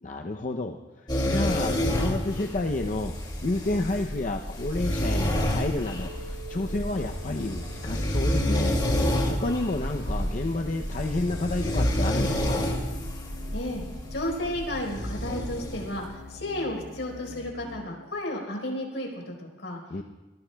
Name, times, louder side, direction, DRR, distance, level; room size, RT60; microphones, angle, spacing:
voice 1, 0.0-12.7 19.9-20.0, left 2 dB, 40° left, 4 dB, 0.6 m, -30 dB
sound 1, 1.1-15.9, equal, 25° left, 2.4 m, -29 dB
sound 2, 6.0-17.8, left 1 dB, 80° right, 5.0 m, -44 dB
voice 2, 13.5-13.8 14.1-19.8, left 1 dB, 70° left, 0 dB, 4.3 m, -33 dB
24.5 x 19.0 x 2.3 m, 1.1 s
head